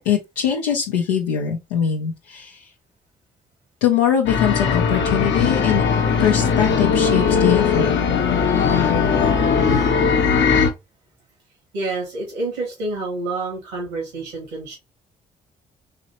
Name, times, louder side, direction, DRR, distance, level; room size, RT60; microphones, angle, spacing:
voice 1, 0.0-2.7 3.8-5.8 6.2-7.9, left 9 dB, 85° left, 0.5 m, -22 dB
sound 1, 4.3-10.7, left 6 dB, 60° left, 0.8 m, -19 dB
voice 2, 11.7-14.8, right 2 dB, 85° right, 2.0 m, -28 dB
4.0 x 3.1 x 2.8 m
hypercardioid pair, 45°, 21 cm